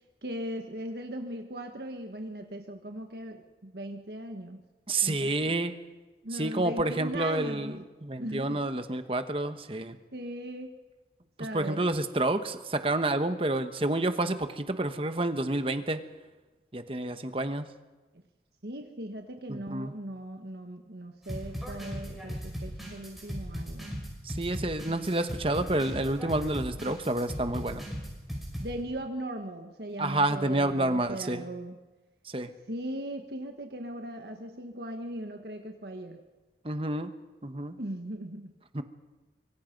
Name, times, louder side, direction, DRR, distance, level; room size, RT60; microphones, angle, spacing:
voice 1, 0.2-4.6 5.0-5.7 6.2-7.8 8.2-8.6 9.9-10.8 11.4-11.9 18.6-24.0 28.6-31.8 32.7-36.2 37.8-38.5, right 1 dB, 65° right, 4 dB, 1.5 m, -38 dB
voice 2, 4.9-5.7 6.3-10.0 11.5-16.0 16.7-17.7 19.5-19.9 24.2-27.9 30.0-31.4 32.3-32.5 36.6-37.1 37.4-37.7 38.7-38.8, right 2 dB, 30° right, 9 dB, 1.2 m, -29 dB
sound 1, 21.3-28.8, equal, ahead, 5.9 m, -38 dB
24.5 x 24.0 x 5.4 m, 1.2 s
head